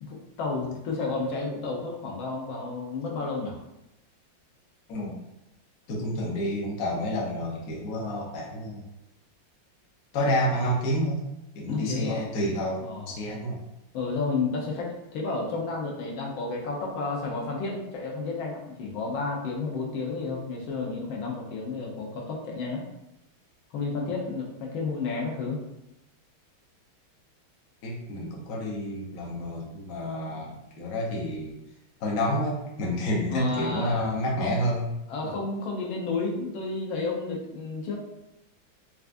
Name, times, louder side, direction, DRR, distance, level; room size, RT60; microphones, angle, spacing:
voice 1, 0.0-3.6 11.7-12.2 12.8-13.1 13.9-22.8 23.7-25.6 33.3-34.1 35.1-38.0, left 3 dB, 80° left, -1 dB, 1.4 m, -31 dB
voice 2, 4.9-5.2 5.9-8.8 10.1-11.2 11.5-13.6 27.8-31.6 32.0-34.9 35.2-35.4, equal, 60° left, -2 dB, 1.0 m, -29 dB
4.5 x 2.3 x 2.5 m, 0.89 s
omnidirectional pair, 2.2 m